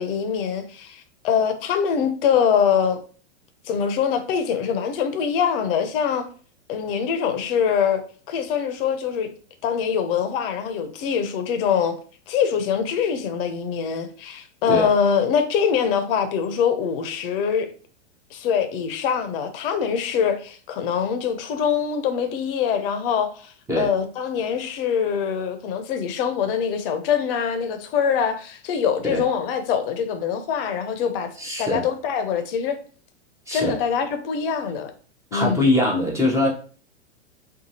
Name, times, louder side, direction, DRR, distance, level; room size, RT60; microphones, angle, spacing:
voice 1, 0.0-3.0 3.7-6.3 6.7-8.0 8.3-9.3 9.6-12.0 12.3-17.7 18.3-31.3 31.6-32.8 33.5-34.9 35.3-35.7, left 7 dB, 50° left, 0.6 m, -23 dB
voice 2, 31.4-31.8 33.5-33.8 35.3-36.5, left 1 dB, 10° right, 0.7 m, -22 dB
2.7 x 2.3 x 2.7 m
hypercardioid pair, 120°, 37 cm